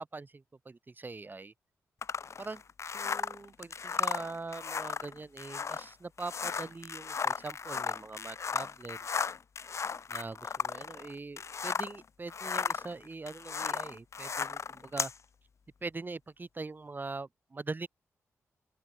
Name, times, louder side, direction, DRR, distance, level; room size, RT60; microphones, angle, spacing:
voice 1, 0.0-1.5 2.4-2.6 2.9-9.2 10.1-15.1 15.8-17.9, right 3 dB, 35° right, 5.0 m, -42 dB
sound 1, 2.0-12.0 12.3-15.2, left 6 dB, 55° left, 1.5 m, -35 dB
open air
cardioid pair, 65°, 6 cm